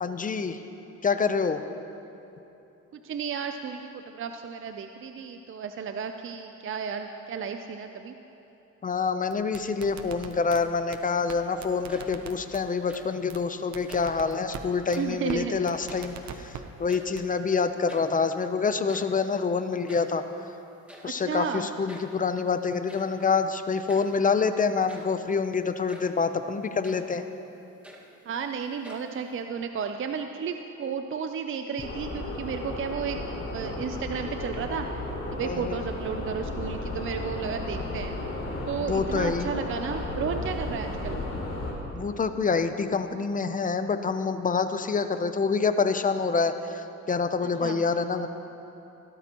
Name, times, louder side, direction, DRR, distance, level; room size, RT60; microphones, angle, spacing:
voice 1, 0.0-0.6 1.0-1.6 8.8-16.5 16.8-20.3 21.0-27.2 35.4-35.8 38.9-39.5 41.9-48.3, left 5 dB, 25° left, 9 dB, 0.6 m, -26 dB
voice 2, 3.0-8.1 15.0-15.6 21.0-21.7 28.3-33.2 33.5-38.2 38.7-41.2 47.4-47.8, right 6 dB, 45° right, 6 dB, 0.5 m, -33 dB
sound 1, 9.3-10.6 10.9-11.0 11.3-11.4 11.6-12.6 12.9-13.0 13.3-13.4 13.7-14.6 14.9-15.0 15.3-15.4 15.7-16.6 16.9-17.2, right 9 dB, 65° right, 0.9 m, -40 dB
sound 2, 11.9-12.4 12.7-13.2 13.8-14.2 14.8-15.2 15.6-16.4 16.7-17.3 17.6-17.7 17.9-18.2 18.7-20.2 20.9-21.2 21.9-22.2 22.9-23.2 23.9-24.2 24.7-25.2 25.9-26.2 26.8-27.1 27.6-28.4 28.8-29.4, equal, 5° right, 1.8 m, -49 dB
sound 3, 31.8-41.7, left 2 dB, 45° left, 3.3 m, -34 dB
17.0 x 13.0 x 3.0 m, 3.0 s
cardioid pair, 90°, 30 cm